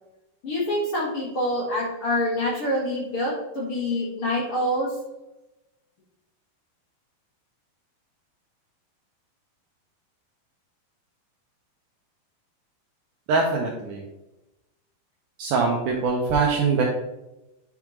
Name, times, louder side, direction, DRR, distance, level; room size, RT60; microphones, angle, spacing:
voice 1, 0.4-4.9, left 1 dB, 45° left, -7 dB, 2.0 m, -26 dB
voice 2, 13.3-14.0 15.4-16.8, right 4 dB, 85° right, -1 dB, 1.8 m, -23 dB
9.6 x 3.6 x 3.0 m, 0.98 s
omnidirectional pair, 4.3 m